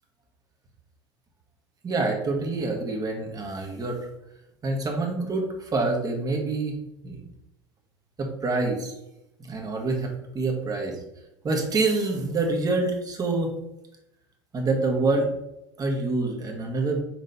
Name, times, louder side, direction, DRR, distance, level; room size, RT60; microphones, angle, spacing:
voice 1, 1.8-4.0 4.6-6.7 7.0-7.2 8.2-8.9 9.4-11.0 11.4-13.5 14.5-15.3 15.8-17.0, right 3 dB, 30° right, 1 dB, 1.6 m, -26 dB
6.2 x 4.0 x 4.1 m, 0.86 s
figure-of-eight pair, 75°, 13 cm